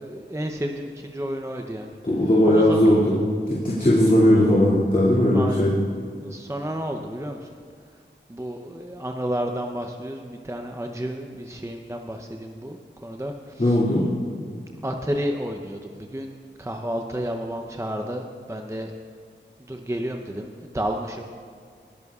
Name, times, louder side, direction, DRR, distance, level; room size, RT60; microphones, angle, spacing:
voice 1, 0.0-1.9 2.5-2.9 5.3-5.7 6.2-7.5 8.3-13.8 14.8-16.3 16.6-18.9 19.7-21.3, equal, 15° right, 3 dB, 0.7 m, -31 dB
voice 2, 2.0-5.7 13.6-14.0, left 1 dB, 45° left, -8 dB, 2.5 m, -18 dB
20.5 x 13.5 x 2.4 m, 2.1 s
wide cardioid pair, 50°, 20 cm